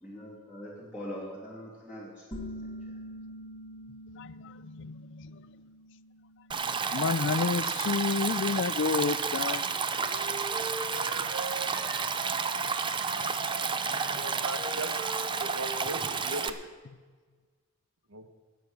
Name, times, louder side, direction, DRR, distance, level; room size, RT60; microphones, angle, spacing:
voice 1, 0.0-2.7, equal, 5° right, -7 dB, 2.7 m, -43 dB
sound 1, 2.3-7.7, equal, 25° left, 1.8 m, -45 dB
voice 2, 4.2-5.4 6.9-9.6 12.0-12.1 16.9-17.0, left 5 dB, 55° left, 16 dB, 0.4 m, -30 dB
Stream, 6.5-16.5, right 5 dB, 20° right, 0.5 m, -31 dB
Wind instrument woodwind instrument, 9.7-12.7 13.0-16.3, right 2 dB, 50° right, 2.2 m, -41 dB
voice 3, 14.1-15.0 15.4-16.6 18.1-18.3, right 1 dB, 75° right, 8 dB, 1.1 m, -38 dB
18.5 x 7.1 x 6.0 m, 1.4 s
head